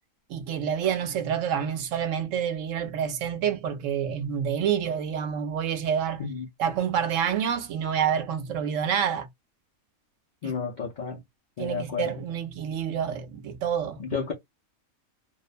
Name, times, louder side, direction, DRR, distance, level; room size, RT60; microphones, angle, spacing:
voice 1, 0.3-6.2 6.6-9.3 10.4-10.6 11.6-14.0, right 8 dB, 70° right, 0.8 m, -28 dB
voice 2, 10.4-11.2 11.6-12.1 14.0-14.3, left 5 dB, 70° left, 0.4 m, -31 dB
2.5 x 2.1 x 2.4 m
omnidirectional pair, 1.5 m